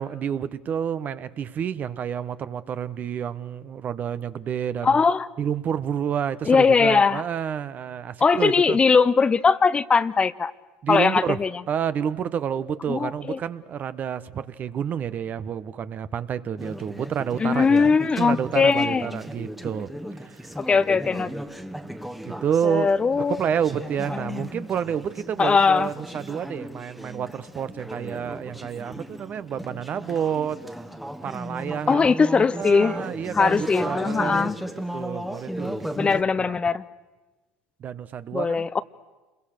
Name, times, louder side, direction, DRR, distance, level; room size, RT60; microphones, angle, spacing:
voice 1, 0.0-5.0 5.4-8.8 10.8-11.4 11.7-17.9 18.2-19.9 20.2-20.5 22.2-22.9 23.3-30.6 31.2-32.0 32.6-34.5 34.9-36.6 37.8-38.6, right 8 dB, 40° right, 14 dB, 1.1 m, -29 dB
voice 2, 4.8-5.3 6.5-7.2 8.2-10.5 10.9-11.5 12.9-13.4 17.4-19.2 20.6-21.3 22.6-23.4 24.2-24.5 25.4-25.9 31.9-33.0 33.3-34.5 36.0-36.8 38.3-38.8, left 5 dB, 25° left, 16 dB, 0.7 m, -20 dB
Conversation / Chatter, 16.6-36.2, equal, 5° right, 1.4 m, -36 dB
28.0 x 22.5 x 6.6 m, 1.2 s
hypercardioid pair, 85°, 4 cm